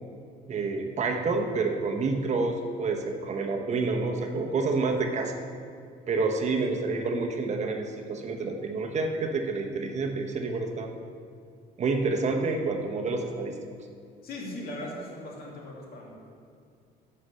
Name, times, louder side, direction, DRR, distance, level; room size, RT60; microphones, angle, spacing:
voice 1, 0.5-5.3 6.1-10.9 11.8-13.5, right 3 dB, 45° right, 3 dB, 1.0 m, -28 dB
voice 2, 14.2-16.1, left 1 dB, 60° left, -2 dB, 2.3 m, -39 dB
8.0 x 5.6 x 6.4 m, 2.4 s
cardioid pair, 110°, 17 cm